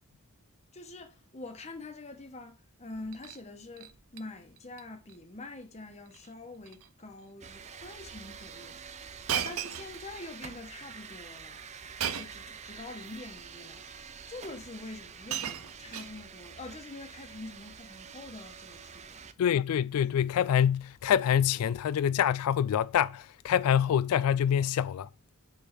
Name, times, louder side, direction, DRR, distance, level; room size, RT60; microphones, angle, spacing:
voice 1, 0.7-8.8 9.3-11.6 12.1-13.9 14.3-19.4, left 2 dB, 30° left, 1.1 m, -45 dB
Shatter, 2.9-3.4 3.8-4.2 4.6-4.8 5.1-5.2 6.1-6.3 6.6-6.9 7.6-7.7 9.3-10.4 12.0-12.5 13.5-13.6 14.6-14.7 15.0-16.5 17.5-17.7, right 9 dB, 70° right, 0.6 m, -36 dB
sound 1, 7.4-19.3, right 6 dB, 30° right, 0.5 m, -47 dB
voice 2, 19.4-25.1, left 9 dB, 85° left, 0.3 m, -26 dB
6.6 x 3.4 x 5.9 m
head